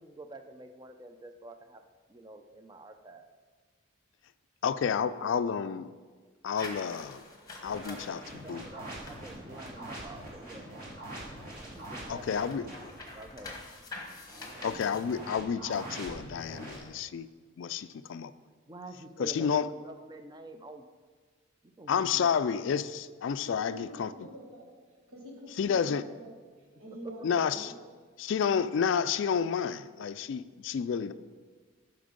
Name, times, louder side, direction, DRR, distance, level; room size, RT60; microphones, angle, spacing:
voice 1, 0.0-1.8 2.1-3.3 7.8-10.7 11.7-12.5 12.8-13.6 18.7-20.8 21.6-22.3 25.6-25.7 27.0-27.5, right 2 dB, 20° right, 7 dB, 0.5 m, -47 dB
voice 2, 4.6-5.9 6.4-7.2 7.6-8.2 8.5-8.6 12.1-12.6 14.6-17.3 17.6-18.3 19.2-19.7 21.9-24.1 25.6-26.0 27.2-27.7 28.2-31.1, left 7 dB, 60° left, 14 dB, 0.3 m, -30 dB
sound 1, 6.5-10.8 11.1-15.4, left 2 dB, 20° left, 1.1 m, -47 dB
sound 2, 7.6-12.9 14.3-16.8, right 1 dB, 40° right, 2.5 m, -44 dB
voice 3, 23.4-24.7 25.1-26.3 26.6-27.7, right 1 dB, 85° right, -1 dB, 1.3 m, -46 dB
8.7 x 5.7 x 5.2 m, 1.5 s
head